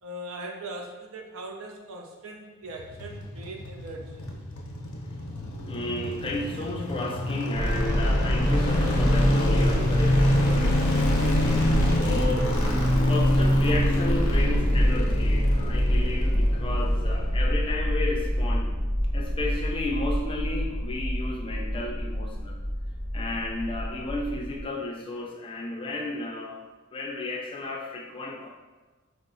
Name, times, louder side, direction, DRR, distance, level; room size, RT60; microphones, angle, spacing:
voice 1, 0.0-4.2, right 1 dB, 80° right, 1 dB, 0.5 m, -40 dB
sound 1, 2.7-17.9 18.2-18.3, left 1 dB, 85° left, 0.6 m, -27 dB
voice 2, 5.6-11.1 11.8-12.6 13.1-18.7 19.1-22.6 23.1-26.6 26.9-28.5, left 2 dB, 25° left, 0 dB, 0.4 m, -33 dB
sound 2, 7.5-24.6, equal, 10° right, 0.8 m, -26 dB
4.5 x 2.0 x 2.5 m, 1.3 s
head